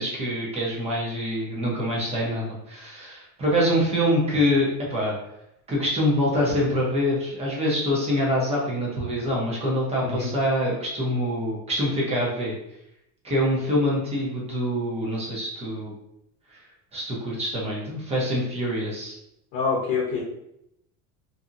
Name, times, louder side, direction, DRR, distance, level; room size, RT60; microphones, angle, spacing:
voice 1, 0.0-5.1 5.7-12.5 13.2-15.9 16.9-19.2, equal, 15° right, -4 dB, 0.7 m, -25 dB
voice 2, 19.5-20.2, left 5 dB, 60° left, -3 dB, 0.8 m, -26 dB
2.7 x 2.7 x 2.5 m, 0.80 s
cardioid pair, 155°, 38 cm